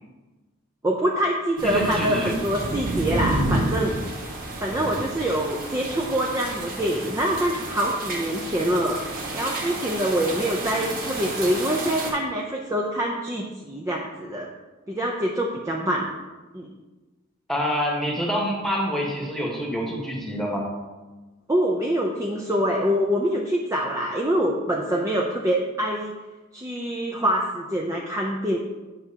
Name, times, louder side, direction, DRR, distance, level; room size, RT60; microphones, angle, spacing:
voice 1, 0.8-4.0 4.6-14.5 14.9-16.1 16.5-16.7 21.5-26.1 26.5-28.6, equal, 15° right, -1 dB, 0.5 m, -25 dB
voice 2, 1.6-2.3 17.5-20.7, equal, ahead, -2 dB, 1.3 m, -26 dB
sound 1, 1.6-12.1, right 2 dB, 45° right, 1.5 m, -30 dB
8.9 x 5.9 x 2.8 m, 1.2 s
head